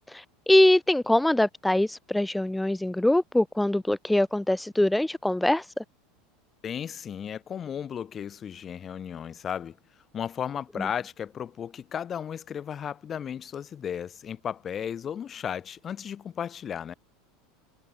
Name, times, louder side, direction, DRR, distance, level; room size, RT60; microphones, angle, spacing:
voice 1, 0.1-5.7 10.8-10.9, left 1 dB, 5° left, 0.4 m, -23 dB
voice 2, 6.6-9.8 10.1-16.9, left 8 dB, 35° left, 2.5 m, -34 dB
hypercardioid pair, 90°, 0 cm